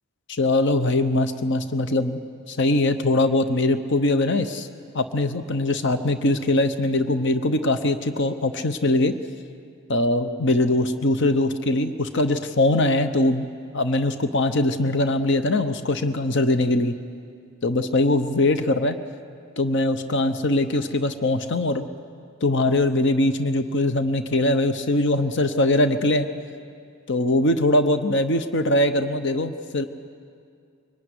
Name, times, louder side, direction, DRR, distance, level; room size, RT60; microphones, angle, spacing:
voice 1, 0.3-2.2 2.5-4.7 4.9-9.1 9.9-13.5 13.7-16.9 17.6-19.0 19.6-21.8 22.4-26.3 27.1-29.8, left 2 dB, 55° left, 10 dB, 0.9 m, -22 dB
23.0 x 19.5 x 9.7 m, 2.3 s
head